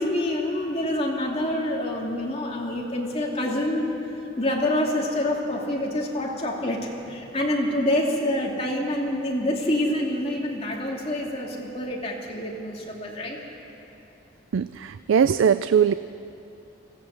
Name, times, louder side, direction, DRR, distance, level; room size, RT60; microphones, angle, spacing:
voice 1, 0.0-3.9 4.4-13.4, left 1 dB, 30° left, -1 dB, 2.5 m, -26 dB
voice 2, 14.5-15.9, right 7 dB, 85° right, 13 dB, 0.4 m, -20 dB
20.0 x 16.0 x 8.0 m, 2.9 s
head